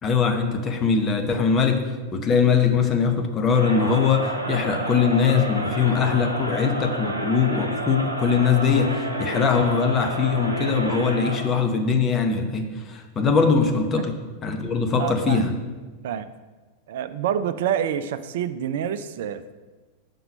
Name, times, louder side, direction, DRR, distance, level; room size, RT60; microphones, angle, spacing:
voice 1, 0.0-1.8 2.1-14.1 14.4-15.5, left 5 dB, 25° left, 4 dB, 0.9 m, -21 dB
Crowd, 3.5-11.6, right 1 dB, 85° right, 0.7 m, -30 dB
voice 2, 15.0-15.4 16.0-16.3 16.9-19.5, right 9 dB, 55° right, 13 dB, 0.4 m, -27 dB
5.9 x 5.4 x 5.4 m, 1.3 s
figure-of-eight pair, 90°, 0 cm